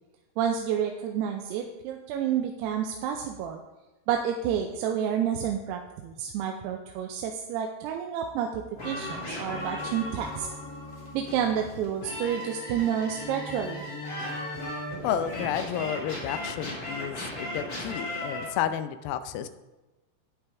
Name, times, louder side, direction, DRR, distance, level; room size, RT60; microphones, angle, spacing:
voice 1, 0.4-3.6 4.1-10.5 11.1-13.8, right 8 dB, 90° right, 2 dB, 2.8 m, -29 dB
sound 1, 8.8-18.4, left 1 dB, 30° left, 3.1 m, -36 dB
voice 2, 15.0-19.5, left 9 dB, 80° left, 10 dB, 2.4 m, -31 dB
11.0 x 9.8 x 3.5 m, 1.1 s
omnidirectional pair, 4.6 m